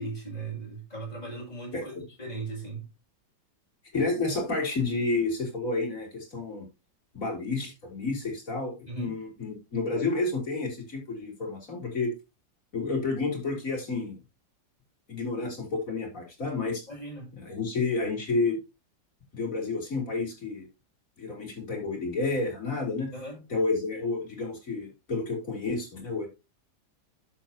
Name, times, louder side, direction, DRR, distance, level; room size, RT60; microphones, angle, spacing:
voice 1, 0.0-2.9 8.9-9.2 16.9-17.3 23.1-23.4, right 3 dB, 20° left, 7.1 m, -38 dB
voice 2, 3.9-6.6 7.1-12.1 12.7-14.2 15.1-16.9 17.3-18.6 19.3-20.7 21.2-23.1 23.5-26.3, left 3 dB, 45° left, 4.1 m, -30 dB
11.5 x 7.3 x 2.9 m
omnidirectional pair, 2.0 m